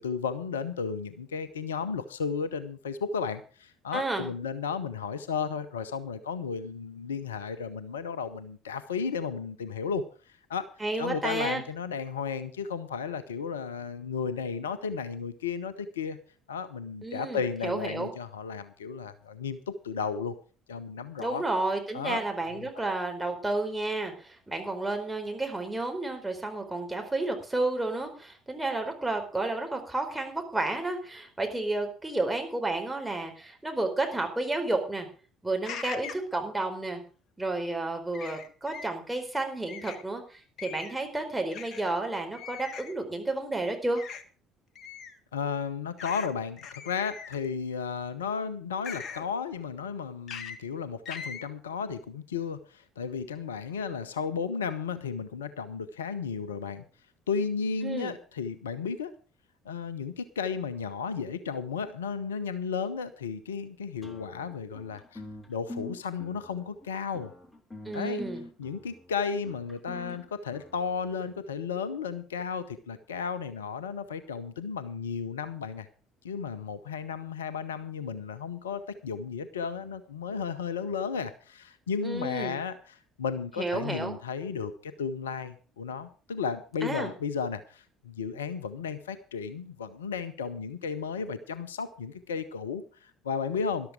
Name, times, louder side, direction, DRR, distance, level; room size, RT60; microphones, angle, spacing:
voice 1, 0.0-10.7 11.0-16.2 16.5-20.3 20.7-21.4 21.9-22.2 22.6-22.9 45.3-56.8 57.3-59.1 59.6-65.2 65.5-67.3 67.9-68.2 68.6-75.9 76.2-93.9, left 6 dB, 75° left, 14 dB, 0.7 m, -34 dB
voice 2, 3.9-4.3 10.8-11.6 17.0-18.1 21.2-35.1 35.4-37.0 37.4-44.0 57.8-58.1 67.8-68.4 82.0-82.6 83.6-84.2 86.8-87.1, right 2 dB, 10° right, 3 dB, 4.3 m, -31 dB
sound 1, 35.6-36.3 38.1-38.9 39.7-40.0 40.6-41.0 41.5-41.8 42.3-42.9 44.0-44.2 44.8-45.2 46.0-46.3 46.6-47.5 48.8-49.2 50.3-50.6 51.1-51.4, left 6 dB, 50° left, 1.3 m, -40 dB
sound 2, 64.0-71.4, left 1 dB, 15° left, 2.9 m, -45 dB
13.0 x 12.0 x 4.8 m, 0.37 s
figure-of-eight pair, 50°, 0 cm